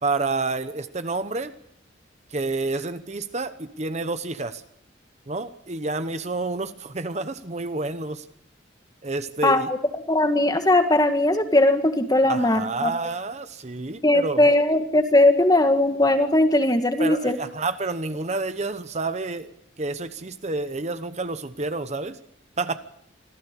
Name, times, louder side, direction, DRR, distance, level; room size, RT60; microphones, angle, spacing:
voice 1, 0.0-1.5 2.3-4.6 5.3-8.3 9.0-9.7 12.2-14.5 17.0-22.2 22.6-22.8, right 3 dB, 35° right, 11 dB, 1.0 m, -29 dB
voice 2, 9.4-9.8 10.1-12.9 14.0-17.4, left 1 dB, 20° left, 7 dB, 2.0 m, -19 dB
26.0 x 15.5 x 8.5 m, 0.72 s
head